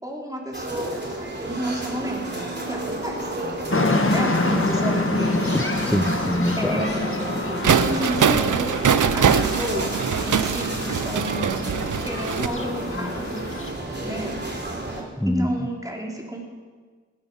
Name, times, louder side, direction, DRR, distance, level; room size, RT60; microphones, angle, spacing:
voice 1, 0.0-3.5 4.1-5.4 6.6-7.1 7.7-9.9 10.2-11.7 12.0-13.4 14.0-14.4 15.3-16.5, equal, 10° right, -1 dB, 3.7 m, -31 dB
sound 1, 0.5-15.0, right 2 dB, 35° right, 3.4 m, -32 dB
sound 2, 3.7-13.7, left 2 dB, 45° left, 1.8 m, -27 dB
voice 2, 5.5-6.8 12.9-13.2 15.0-15.6, equal, 5° left, 7 dB, 0.8 m, -26 dB
sound 3, 7.6-12.5, right 7 dB, 80° right, 0.6 m, -22 dB
16.5 x 13.0 x 5.6 m, 1.5 s
cardioid pair, 45°, 30 cm